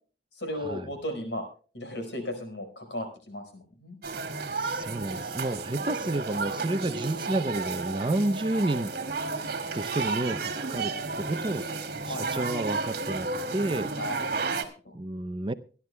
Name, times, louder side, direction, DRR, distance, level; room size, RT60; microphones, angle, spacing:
voice 1, 0.3-1.5 1.7-4.0 11.3-11.4 12.0-12.4 13.9-14.9, left 1 dB, 80° left, 6 dB, 5.0 m, -36 dB
sound 1, 4.0-14.7, right 4 dB, 55° right, 2.1 m, -32 dB
voice 2, 4.6-8.9 9.7-11.8 12.1-13.9 14.9-15.5, right 1 dB, 25° right, 11 dB, 0.6 m, -30 dB
25.5 x 11.0 x 2.2 m, 0.38 s
head